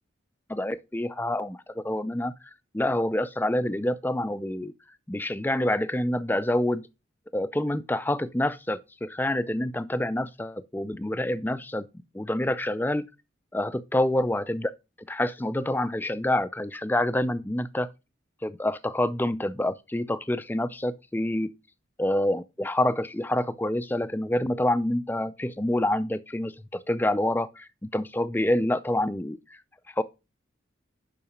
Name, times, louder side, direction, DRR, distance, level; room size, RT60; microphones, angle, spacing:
voice 1, 0.5-4.7 5.1-6.9 7.3-11.9 12.1-13.0 13.5-14.7 15.1-17.9 18.4-21.5 22.0-29.4 30.0-30.1, left 1 dB, 10° left, 0.4 m, -27 dB
7.0 x 5.8 x 5.0 m
head